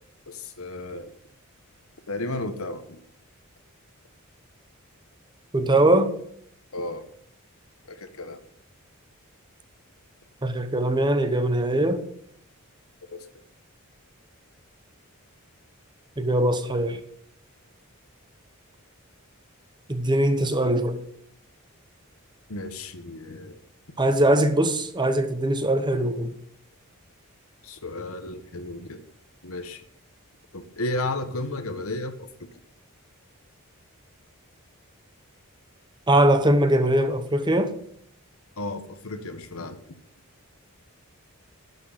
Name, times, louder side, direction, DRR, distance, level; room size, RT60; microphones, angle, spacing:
voice 1, 0.3-1.1 2.1-3.0 6.7-7.1 7.9-8.4 13.1-13.2 22.5-23.6 27.6-29.0 29.4-29.8 30.5-32.5 38.6-39.8, left 2 dB, 70° left, 1.3 m, -33 dB
voice 2, 5.5-6.2 10.4-12.1 16.2-17.0 19.9-21.0 24.0-26.3 36.1-37.7, right 1 dB, 20° right, 1.0 m, -21 dB
11.0 x 6.3 x 8.7 m
head